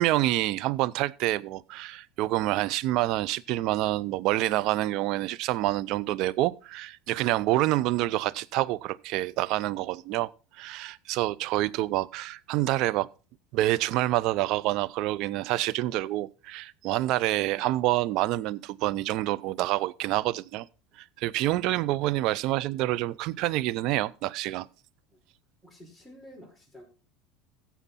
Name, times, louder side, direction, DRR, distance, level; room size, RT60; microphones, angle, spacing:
voice 1, 0.0-10.3 10.6-13.1 13.5-20.7 21.0-24.7, right 16 dB, 60° right, 0.5 m, -27 dB
voice 2, 25.6-26.8, equal, 5° right, 5.3 m, -50 dB
15.0 x 7.1 x 4.1 m
hypercardioid pair, 85°, 0 cm